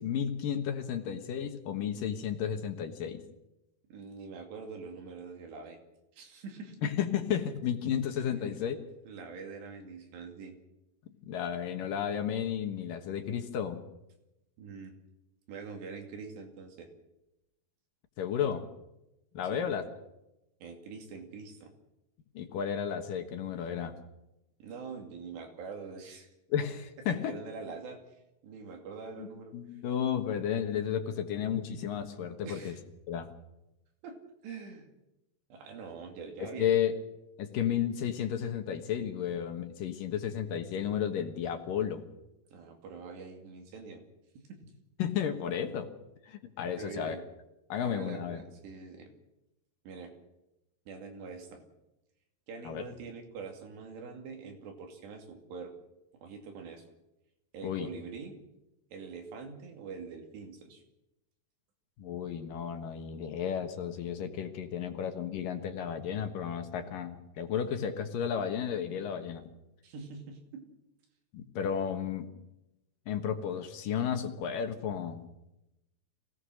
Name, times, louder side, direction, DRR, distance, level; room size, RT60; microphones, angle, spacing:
voice 1, 0.0-3.2 6.8-8.8 11.3-13.8 18.2-18.7 19.3-19.8 22.3-24.0 26.5-27.3 29.2-29.3 29.5-32.7 33.1-33.3 36.4-36.9 37.4-42.1 45.0-45.9 46.3-47.2 47.7-48.4 52.6-52.8 57.6-57.9 62.0-69.5 71.3-72.3 73.1-75.2, left 8 dB, 65° left, 6 dB, 2.7 m, -33 dB
voice 2, 3.9-5.8 6.1-6.9 8.3-8.5 9.1-10.6 14.6-14.9 15.5-16.9 19.4-19.6 20.6-21.7 24.6-26.3 27.3-29.6 32.4-32.8 34.0-34.2 34.4-34.9 35.5-36.8 42.5-44.0 44.5-44.6 46.8-47.2 47.8-49.1 49.8-50.1 50.9-51.6 52.5-55.7 56.2-56.8 57.5-58.4 58.9-60.8 69.8-70.6, right 5 dB, 90° right, 4 dB, 4.8 m, -44 dB
24.0 x 17.5 x 6.4 m, 0.92 s
omnidirectional pair, 4.7 m